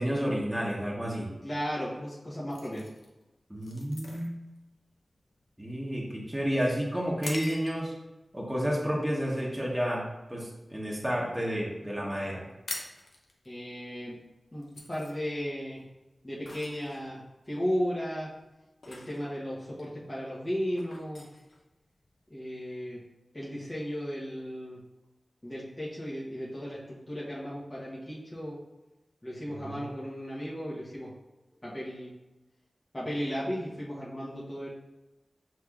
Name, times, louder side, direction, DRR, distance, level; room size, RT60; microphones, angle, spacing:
voice 1, 0.0-1.3 3.5-4.3 5.6-7.9 8.3-10.0 10.3-12.4 29.6-29.9, equal, 10° right, -4 dB, 1.0 m, -31 dB
voice 2, 1.4-2.8 13.4-14.1 14.5-15.8 16.2-18.3 18.8-21.3 22.3-23.0 23.3-24.8 25.4-28.6 29.2-31.1 31.6-32.1 32.9-34.7, equal, 30° left, -7 dB, 1.0 m, -35 dB
sound 1, 2.5-8.1 8.6-8.9 9.4-9.7 10.0-11.2 11.5-11.6 11.8-12.0 12.3-22.3, left 2 dB, 85° left, 0.6 m, -45 dB
5.5 x 3.3 x 2.4 m, 1.0 s
wide cardioid pair, 65°, 0 cm